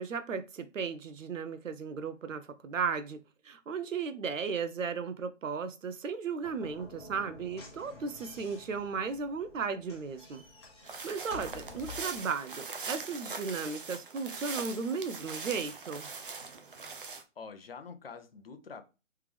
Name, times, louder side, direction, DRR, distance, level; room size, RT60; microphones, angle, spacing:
voice 1, 0.0-10.4 10.8-16.1, right 5 dB, 80° right, 0.8 m, -35 dB
Slam / Knock, 6.3-12.2, left 3 dB, 20° left, 0.9 m, -50 dB
sound 1, 10.9-17.2, right 4 dB, 45° right, 0.5 m, -41 dB
voice 2, 17.4-18.8, left 5 dB, 50° left, 0.6 m, -46 dB
3.5 x 3.2 x 3.4 m
hypercardioid pair, 170°, 38 cm